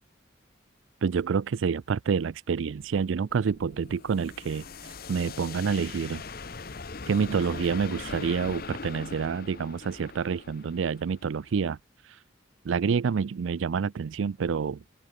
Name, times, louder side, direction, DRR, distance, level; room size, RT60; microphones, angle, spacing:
voice 1, 1.0-6.2 7.1-11.8 12.0-12.2 12.6-14.8, right 6 dB, 80° right, 0.4 m, -28 dB
sound 1, 2.8-11.7, left 4 dB, 50° left, 1.0 m, -41 dB
open air
head